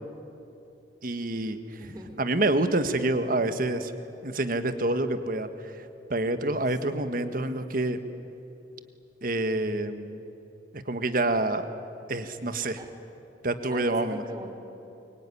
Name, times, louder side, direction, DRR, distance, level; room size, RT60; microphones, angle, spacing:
voice 1, 1.0-1.8 2.2-3.9 4.2-8.0 9.2-10.2 10.7-11.7 12.1-12.8 13.4-14.2, right 2 dB, 55° right, 9 dB, 1.5 m, -27 dB
voice 2, 1.8-2.3 6.9-7.3 12.8-12.9 13.7-14.5, right 1 dB, 25° right, 5 dB, 3.1 m, -42 dB
24.0 x 23.5 x 9.9 m, 2.9 s
head